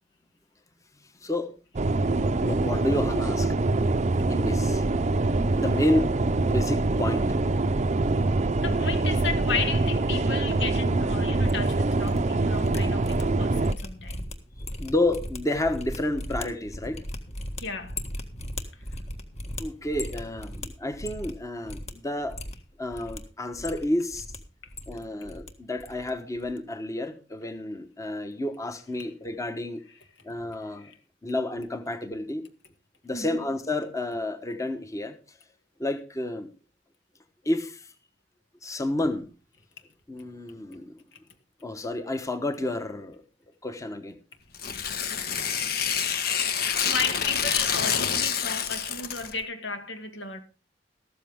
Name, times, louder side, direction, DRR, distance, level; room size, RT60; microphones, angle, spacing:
voice 1, 1.2-1.5 2.4-3.6 4.3-4.9 5.6-6.1 6.5-7.2 14.8-17.1 19.6-22.4 22.8-24.3 24.9-29.8 30.2-30.9 31.2-32.5 33.0-35.4 35.8-36.5 37.4-37.9 38.6-39.3 40.1-41.0 41.6-43.2 43.6-44.1, left 1 dB, 20° left, 1.2 m, -30 dB
sound 1, 1.7-13.7, right 2 dB, 40° right, 0.6 m, -24 dB
voice 2, 8.6-14.3 17.6-18.0 30.8-31.0 33.1-33.4 41.1-41.2 46.7-50.4, left 4 dB, 80° left, 2.2 m, -34 dB
sound 2, 11.5-12.2 12.4-21.4 21.6-21.9 22.2-23.2 23.5-24.4 24.6-25.5 25.8-26.1 26.4-26.6, left 1 dB, 40° left, 1.6 m, -38 dB
Tearing, 44.5-49.4, left 7 dB, 60° left, 1.4 m, -27 dB
14.0 x 13.5 x 3.6 m
head